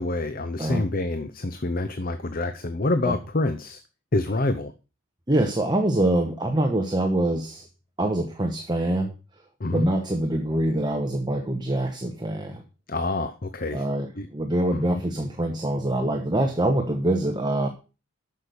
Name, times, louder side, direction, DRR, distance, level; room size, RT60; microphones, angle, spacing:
voice 1, 0.0-3.8 4.1-4.7 9.6-9.9 12.9-13.8 14.2-14.3 14.7-15.0, left 2 dB, 40° left, 9 dB, 0.7 m, -27 dB
voice 2, 5.3-7.7 8.0-9.1 9.7-12.6 13.7-17.7, right 1 dB, 20° right, 4 dB, 1.0 m, -24 dB
8.2 x 6.5 x 6.9 m, 0.33 s
head